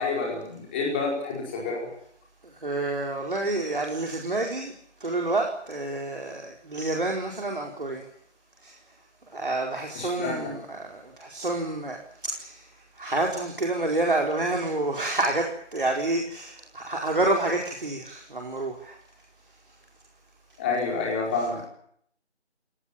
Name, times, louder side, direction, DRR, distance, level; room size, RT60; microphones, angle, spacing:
voice 1, 0.0-1.9 9.9-10.5 20.6-21.6, left 4 dB, 10° left, -2 dB, 4.8 m, -28 dB
voice 2, 2.6-4.7 5.0-8.0 8.6-8.7 9.3-12.0 12.2-12.6 13.0-15.5 15.7-19.0 21.5-21.6, right 2 dB, 50° right, 1 dB, 4.7 m, -28 dB
27.5 x 18.5 x 8.9 m, 0.67 s
figure-of-eight pair, 170°, 35 cm